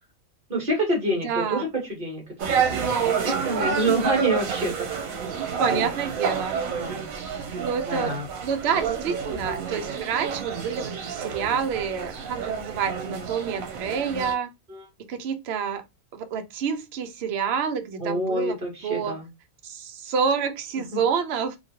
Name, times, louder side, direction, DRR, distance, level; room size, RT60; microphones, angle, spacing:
voice 1, 0.5-5.3 5.7-5.9 6.7-7.1 7.8-8.3 14.7-14.8 18.0-19.3 20.9-21.0, right 1 dB, 40° right, 1.5 m, -28 dB
voice 2, 1.2-1.7 3.2-3.3 5.6-6.6 7.6-8.1 8.4-14.5 15.1-15.8 16.1-18.6 18.8-19.2 19.6-21.6, right 6 dB, 65° right, 0.7 m, -28 dB
sound 1, 2.4-14.3, right 7 dB, 85° right, 1.1 m, -29 dB
3.0 x 2.4 x 2.8 m
omnidirectional pair, 1.4 m